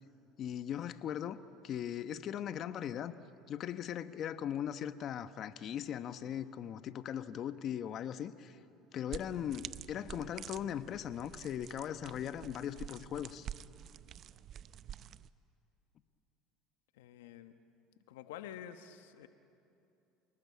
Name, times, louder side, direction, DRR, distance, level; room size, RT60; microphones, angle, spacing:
voice 1, 0.4-3.1 3.5-8.6 8.9-13.5, left 10 dB, 50° left, 11 dB, 1.1 m, -39 dB
sound 1, 9.1-15.3, right 10 dB, 50° right, 0.6 m, -48 dB
voice 2, 17.0-17.5 18.1-19.3, left 10 dB, 90° left, 9 dB, 1.1 m, -48 dB
28.0 x 19.5 x 8.5 m, 2.7 s
supercardioid pair, 100°, 0 cm